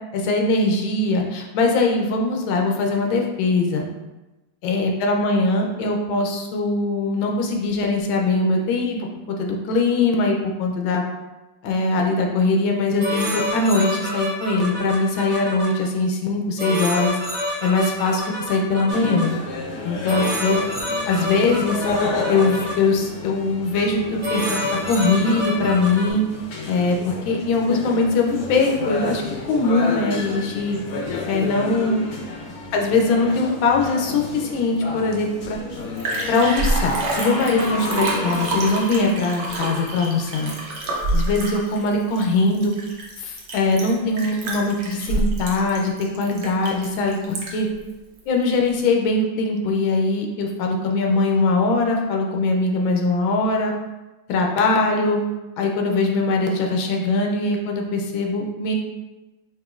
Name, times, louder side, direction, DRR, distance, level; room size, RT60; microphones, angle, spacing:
voice 1, 0.1-3.9 4.6-9.1 9.4-11.0 11.6-17.2 17.6-19.3 19.8-20.6 21.0-21.9 22.3-26.2 26.7-29.2 29.5-30.8 31.2-32.0 32.7-35.6 36.3-40.5 41.1-42.7 43.2-47.7 48.3-53.7 54.3-55.2 55.6-58.7, left 3 dB, 85° left, 1 dB, 1.4 m, -21 dB
sound 1, 13.0-15.7 16.6-19.2 20.1-22.7 23.7-23.9 24.2-26.1, left 1 dB, 30° right, 1.3 m, -27 dB
sound 2, 18.9-38.7, left 3 dB, 65° left, 0.9 m, -31 dB
Liquid, 35.5-35.6 35.8-47.7 48.2-48.3, right 2 dB, 85° right, 0.6 m, -27 dB
4.8 x 3.0 x 2.4 m, 1.1 s
omnidirectional pair, 2.1 m